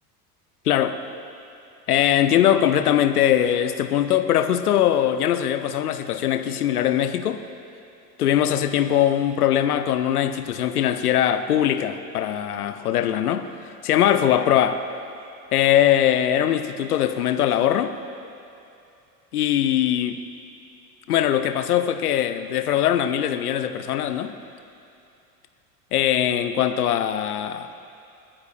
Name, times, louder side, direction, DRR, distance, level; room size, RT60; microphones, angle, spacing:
voice 1, 0.7-1.0 1.9-7.4 8.2-13.5 13.8-14.8 15.5-17.9 19.3-20.2 21.1-24.3 25.9-27.8, left 10 dB, 70° left, 9 dB, 0.8 m, -21 dB
29.0 x 9.7 x 2.4 m, 2.6 s
figure-of-eight pair, 75°, 47 cm